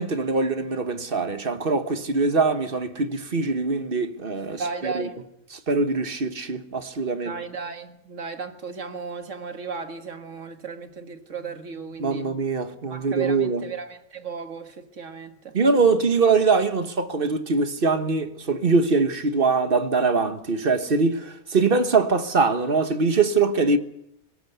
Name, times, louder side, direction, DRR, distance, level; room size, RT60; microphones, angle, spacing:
voice 1, 0.0-5.1 5.5-7.4 12.0-13.6 15.5-23.8, right 4 dB, 40° right, 1.4 m, -23 dB
voice 2, 4.6-5.2 7.3-12.3 12.9-15.6, right 5 dB, 60° right, 1.9 m, -35 dB
19.5 x 19.0 x 8.0 m
omnidirectional pair, 1.5 m